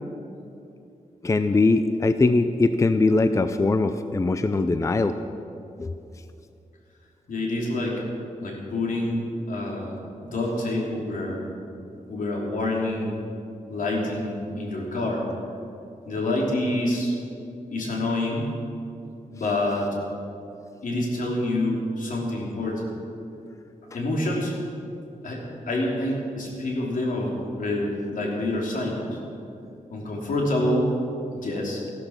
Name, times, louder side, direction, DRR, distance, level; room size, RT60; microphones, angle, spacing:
voice 1, 1.2-5.1 5.8-5.9, left 3 dB, 25° left, 10 dB, 0.5 m, -21 dB
voice 2, 7.3-8.0 8.4-10.0 10.3-11.4 12.1-13.2 13.7-15.2 16.1-17.1 17.7-18.5 19.3-19.9 20.8-22.9 23.9-24.5 25.2-25.4 25.7-29.2 29.9-30.9 31.4-31.8, left 1 dB, 80° left, -2 dB, 3.1 m, -27 dB
14.5 x 12.5 x 5.9 m, 2.7 s
wide cardioid pair, 130°, 14 cm